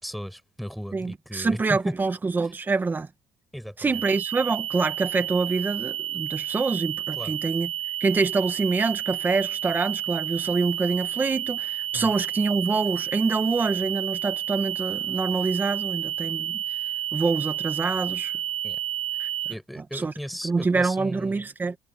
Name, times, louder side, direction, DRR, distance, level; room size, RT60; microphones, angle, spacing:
voice 1, 0.0-1.9 3.5-3.9 7.2-7.3 11.9-12.1 18.6-18.8 19.5-21.5, equal, ahead, 7.0 m, -36 dB
voice 2, 0.9-3.1 3.8-7.7 8.0-16.6 17.1-18.3 19.2-19.3 19.8-20.1 20.4-21.8, right 4 dB, 15° right, 1.4 m, -26 dB
sound 1, 3.9-19.5, right 11 dB, 75° right, 1.4 m, -31 dB
cardioid pair, 150°, 11 cm